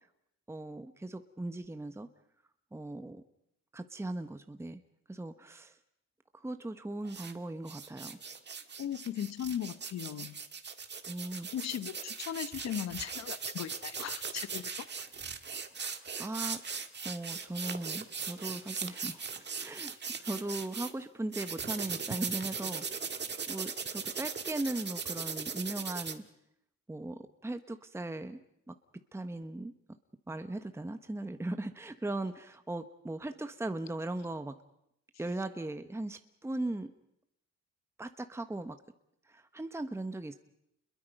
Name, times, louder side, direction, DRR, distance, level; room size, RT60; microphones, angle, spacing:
voice 1, 0.5-2.1 2.7-3.2 3.7-4.8 5.1-5.8 6.4-8.2 11.1-11.5 15.8-16.6 17.0-23.2 23.5-26.2 26.9-28.4 28.7-28.8 29.1-29.7 30.3-34.6 35.2-36.9 38.0-38.8 39.3-40.3, right 2 dB, 10° right, 9 dB, 1.1 m, -38 dB
sound 1, 7.1-7.3 7.7-20.9 21.3-26.1, right 5 dB, 35° right, 1.7 m, -39 dB
voice 2, 8.8-10.4 11.3-14.7 15.0-15.1, left 10 dB, 60° left, 14 dB, 1.1 m, -38 dB
29.0 x 22.0 x 5.4 m, 0.78 s
cardioid pair, 90°, 30 cm